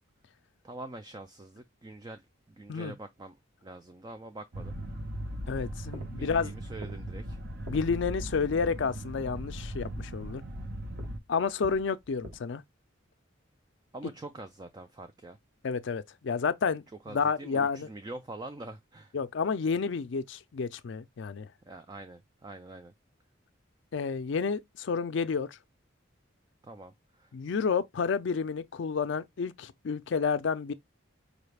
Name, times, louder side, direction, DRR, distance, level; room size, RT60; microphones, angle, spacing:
voice 1, 0.6-2.2 2.5-3.4 3.6-4.8 6.2-7.4 13.9-15.4 17.1-19.1 21.7-22.9 26.6-27.3, right 2 dB, 20° right, 0.3 m, -44 dB
sound 1, 4.5-11.2, equal, 50° right, 0.7 m, -38 dB
voice 2, 5.5-6.5 7.7-10.4 11.3-12.6 15.6-17.9 19.1-21.5 23.9-25.6 27.3-30.7, left 5 dB, 60° left, 0.4 m, -30 dB
sound 2, 5.7-8.5 10.9-12.4, right 1 dB, 80° right, 1.4 m, -49 dB
5.0 x 2.3 x 3.2 m
head